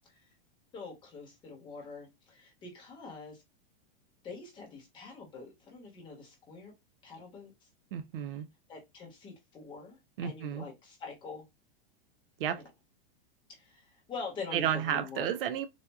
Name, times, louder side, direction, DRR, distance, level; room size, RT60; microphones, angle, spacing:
voice 1, 0.7-3.4 4.2-6.7 7.0-7.5 8.7-11.5 12.5-12.7 13.5-15.3, left 4 dB, 15° left, 1.1 m, -45 dB
voice 2, 7.9-8.5 10.2-10.6 12.4-12.6 14.5-15.7, right 9 dB, 60° right, 0.5 m, -32 dB
4.2 x 2.3 x 2.3 m
supercardioid pair, 170°, 31 cm